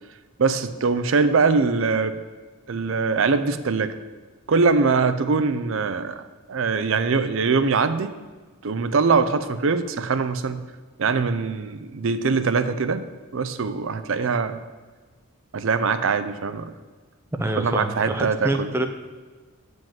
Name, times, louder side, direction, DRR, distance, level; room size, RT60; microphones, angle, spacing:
voice 1, 0.4-2.2 2.7-3.9 4.5-6.2 6.5-8.2 8.6-10.6 11.0-13.0 13.3-14.6 15.5-16.7 17.6-18.7, right 4 dB, 65° right, 11 dB, 0.5 m, -22 dB
voice 2, 17.4-18.9, right 1 dB, 10° right, 6 dB, 0.5 m, -26 dB
7.5 x 5.2 x 7.4 m, 1.4 s
head